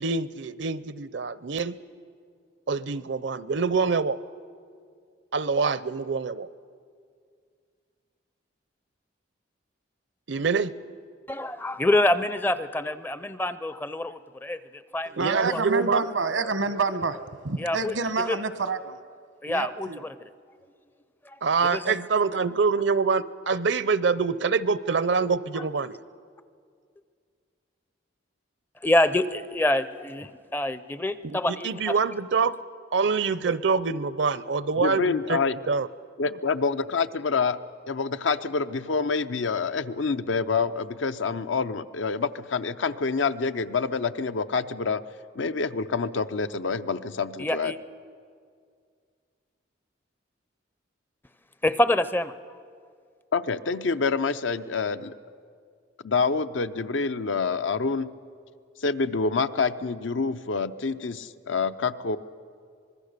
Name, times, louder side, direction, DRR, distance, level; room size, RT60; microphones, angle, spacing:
voice 1, 0.0-1.8 2.7-4.2 5.3-6.5 10.3-10.7 15.2-16.1 21.4-26.0 31.2-32.6 32.9-35.4 35.7-35.9 36.2-36.3, right 5 dB, 65° right, 17 dB, 0.6 m, -25 dB
voice 2, 11.3-15.2 15.5-15.6 17.6-18.4 19.4-20.3 21.2-22.0 25.6-25.7 28.8-31.9 47.4-47.8 51.6-52.6, left 1 dB, 10° left, 14 dB, 0.5 m, -27 dB
voice 3, 15.2-17.2 17.4-19.0 19.5-20.0, right 4 dB, 85° right, 11 dB, 1.1 m, -28 dB
voice 4, 34.8-35.6 36.2-37.6 37.9-45.0 45.4-47.7 53.3-55.1 56.0-58.1 58.8-62.2, left 4 dB, 75° left, 11 dB, 0.7 m, -27 dB
25.0 x 21.0 x 6.7 m, 2.2 s
head